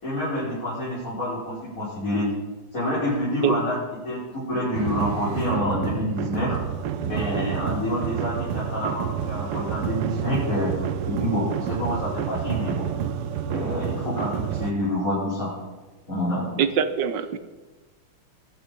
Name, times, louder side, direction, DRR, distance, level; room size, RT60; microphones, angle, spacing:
voice 1, 0.0-2.3 2.7-6.6 7.0-10.7 11.0-12.8 13.5-15.5 16.1-16.6, left 1 dB, 35° left, -10 dB, 5.7 m, -27 dB
sound 1, 4.7-14.7, right 9 dB, 85° right, 1.7 m, -29 dB
voice 2, 16.6-17.4, right 8 dB, 60° right, 11 dB, 1.4 m, -23 dB
21.5 x 7.7 x 5.3 m, 1.2 s
omnidirectional pair, 2.4 m